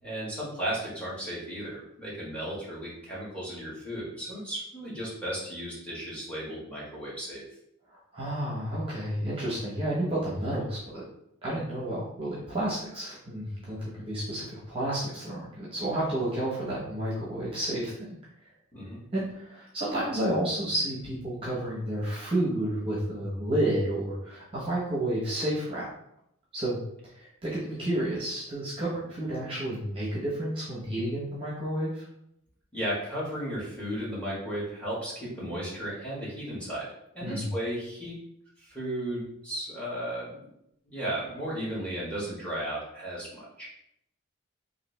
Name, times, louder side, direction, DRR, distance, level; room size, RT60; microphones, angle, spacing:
voice 1, 0.0-7.4 18.7-19.0 32.7-36.9 37.1-38.2 38.6-40.5 40.8-43.7, right 1 dB, 5° left, -7 dB, 1.3 m, -35 dB
voice 2, 8.1-11.0 11.4-18.2 19.1-25.9 26.5-26.8 27.0-32.1 37.2-37.5, right 1 dB, 25° right, -7 dB, 0.8 m, -31 dB
3.2 x 2.6 x 3.2 m, 0.77 s
head